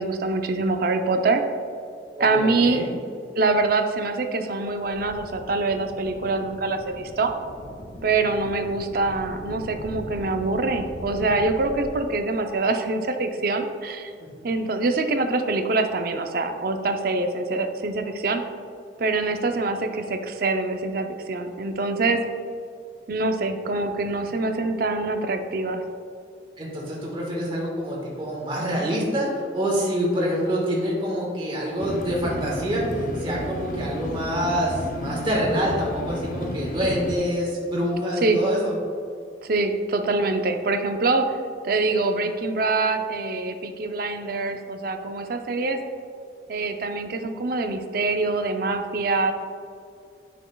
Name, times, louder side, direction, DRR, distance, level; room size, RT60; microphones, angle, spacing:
voice 1, 0.0-1.4 2.2-2.8 3.4-7.3 8.0-14.1 14.4-18.4 19.0-22.2 23.1-25.8 38.2-38.4 39.4-41.4 41.6-45.8 46.5-49.3, right 3 dB, 55° right, 6 dB, 0.6 m, -24 dB
voice 2, 2.1-2.9 14.2-14.3 26.6-38.7, equal, 30° right, -4 dB, 1.5 m, -26 dB
sound 1, 4.7-12.0, equal, 80° left, 1.5 m, -40 dB
sound 2, 31.8-37.2, left 1 dB, 50° left, 0.6 m, -32 dB
9.0 x 6.1 x 2.3 m, 2.3 s
head